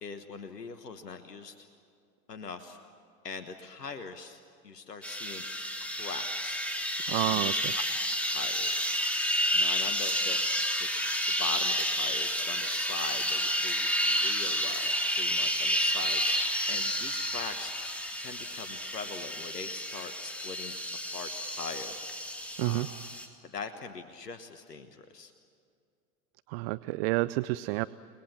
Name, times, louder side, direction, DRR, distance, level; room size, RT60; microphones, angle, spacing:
voice 1, 0.0-1.7 2.3-2.8 3.2-5.5 5.8-6.6 7.0-7.8 8.3-8.9 9.5-10.4 10.8-10.9 11.3-20.8 21.1-22.9 23.4-25.3, left 5 dB, 80° left, 8 dB, 1.5 m, -42 dB
sound 1, 5.0-23.3, equal, 5° left, 3.3 m, -30 dB
voice 2, 7.1-7.7 22.6-22.9 26.5-27.9, right 20 dB, 40° right, 17 dB, 0.6 m, -29 dB
30.0 x 21.0 x 7.3 m, 2.4 s
figure-of-eight pair, 90°, 47 cm